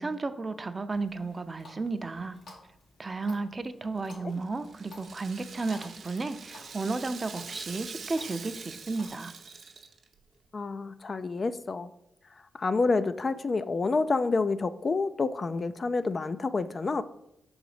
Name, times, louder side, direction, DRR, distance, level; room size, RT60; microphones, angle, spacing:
voice 1, 0.0-2.4 3.0-9.3, right 3 dB, 35° right, 10 dB, 0.5 m, -33 dB
Water tap faucet, 0.9-9.1, left 3 dB, 90° left, 1.9 m, -54 dB
Rattle (instrument), 4.0-10.2, right 5 dB, 65° right, 0.7 m, -44 dB
voice 2, 10.5-11.9 12.6-17.0, left 3 dB, 45° left, 12 dB, 0.3 m, -28 dB
5.8 x 4.0 x 4.9 m, 0.83 s
cardioid pair, 70°, 0 cm